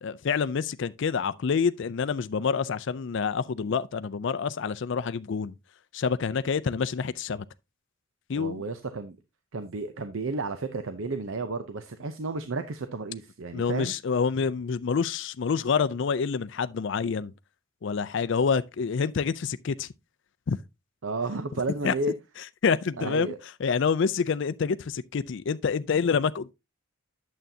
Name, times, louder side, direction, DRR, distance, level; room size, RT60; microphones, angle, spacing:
voice 1, 0.0-5.5 5.9-7.4 8.3-8.6 13.5-17.3 17.8-19.9 20.5-20.6 21.8-21.9 22.6-23.3 23.6-26.5, left 5 dB, 60° left, 0.4 m, -27 dB
voice 2, 8.4-9.2 9.5-13.9 21.0-22.1 23.0-23.4, right 3 dB, 70° right, 0.6 m, -32 dB
9.1 x 7.5 x 2.7 m
head